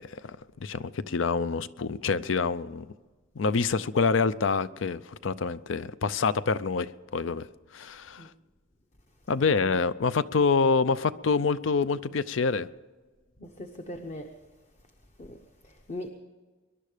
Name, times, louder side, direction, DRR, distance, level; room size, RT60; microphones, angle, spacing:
voice 1, 0.0-2.9 3.4-7.5 7.7-8.3 9.3-12.7, left 4 dB, 75° left, 0.5 m, -26 dB
voice 2, 13.4-14.3 15.2-16.1, left 1 dB, 35° left, 1.0 m, -40 dB
22.0 x 11.5 x 5.0 m
head